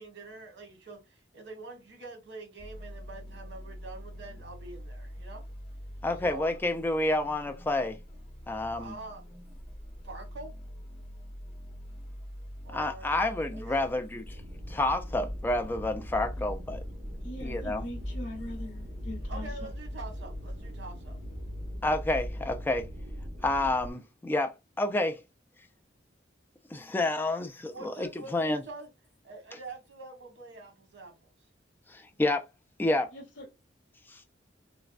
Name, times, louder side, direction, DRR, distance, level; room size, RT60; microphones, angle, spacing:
voice 1, 0.0-5.4 6.2-6.5 8.7-9.2 10.0-10.5 12.6-13.1 13.5-14.1 19.3-21.2 27.0-27.4 27.6-28.9 29.2-31.3, right 3 dB, 65° right, 1.0 m, -45 dB
sound 1, 2.6-22.3, equal, 30° left, 0.9 m, -45 dB
voice 2, 6.0-8.0 8.5-8.9 12.7-14.2 14.7-16.8 17.4-17.8 21.8-22.9 23.4-25.2 26.7-27.5 27.8-28.6 31.9-32.5 32.8-33.1 34.1-34.2, left 2 dB, 10° left, 0.3 m, -29 dB
sound 2, 14.2-23.9, equal, 40° right, 0.8 m, -40 dB
voice 3, 17.2-19.7 33.1-33.5, left 1 dB, 75° left, 0.7 m, -42 dB
3.3 x 2.0 x 2.3 m
head